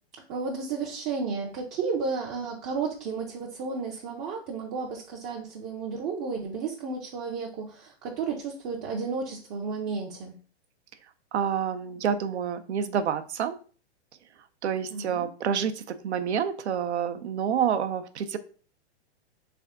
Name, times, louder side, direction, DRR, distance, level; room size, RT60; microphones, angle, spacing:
voice 1, 0.3-10.3 14.9-15.3, right 4 dB, 25° right, -2 dB, 0.4 m, -32 dB
voice 2, 11.3-13.5 14.6-18.4, right 8 dB, 90° right, 9 dB, 0.6 m, -28 dB
3.4 x 3.4 x 3.5 m, 0.41 s
hypercardioid pair, 140°, 33 cm